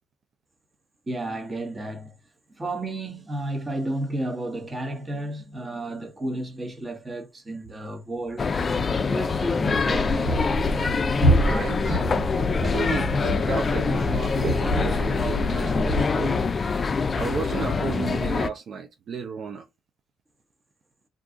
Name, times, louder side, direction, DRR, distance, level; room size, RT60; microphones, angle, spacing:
voice 1, 1.1-2.2 2.6-8.4 9.1-10.3 11.8-11.9, right 1 dB, 25° right, 1.0 m, -32 dB
sound 1, 8.4-18.5, left 4 dB, 35° left, 0.3 m, -25 dB
sound 2, 9.8-16.0, right 1 dB, 85° right, 1.4 m, -27 dB
voice 2, 11.4-12.0 12.6-16.5 17.2-19.7, right 5 dB, 60° right, 0.4 m, -33 dB
2.5 x 2.3 x 3.7 m
cardioid pair, 90°, 0 cm